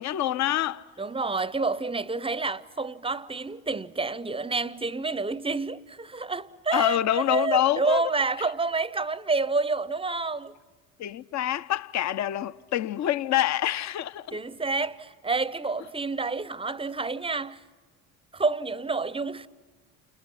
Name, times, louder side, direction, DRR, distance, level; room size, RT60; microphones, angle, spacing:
voice 1, 0.0-0.9 6.7-8.0 11.0-14.4, left 12 dB, 40° left, 0.8 m, -26 dB
voice 2, 1.0-10.6 14.3-17.6 18.3-19.5, right 4 dB, 15° right, 0.7 m, -29 dB
30.0 x 26.5 x 5.8 m
figure-of-eight pair, 55°, 43 cm